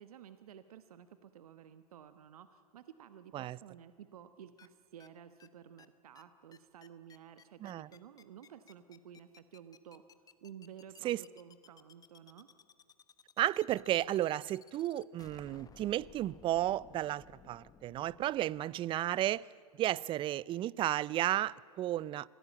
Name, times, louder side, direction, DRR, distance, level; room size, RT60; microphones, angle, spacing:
voice 1, 0.0-10.0 10.4-12.5, right 9 dB, 75° right, 11 dB, 1.2 m, -53 dB
sound 1, 4.6-4.7 5.0-5.1 5.4-5.5 5.8-5.9 6.1-6.2 6.5-18.6, left 7 dB, 20° left, 1.1 m, -59 dB
voice 2, 13.4-19.4 19.8-22.3, right 13 dB, 25° right, 23 dB, 0.5 m, -33 dB
25.0 x 17.0 x 8.6 m, 2.4 s
hypercardioid pair, 110°, 19 cm